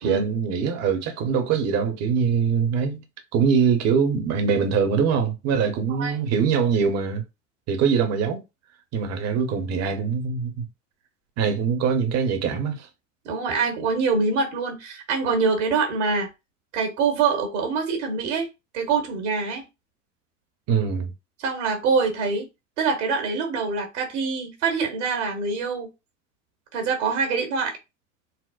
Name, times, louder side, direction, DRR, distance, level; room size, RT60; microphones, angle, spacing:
voice 1, 0.0-3.0 3.3-7.2 7.7-8.4 8.9-10.7 11.4-12.9 20.7-21.1, right 6 dB, 40° right, 0.9 m, -23 dB
voice 2, 13.2-16.3 16.7-18.5 18.7-19.6 21.4-22.5 22.8-25.9 26.7-27.8, right 4 dB, 65° right, 1.3 m, -24 dB
4.2 x 2.1 x 2.4 m
hypercardioid pair, 85°, 38 cm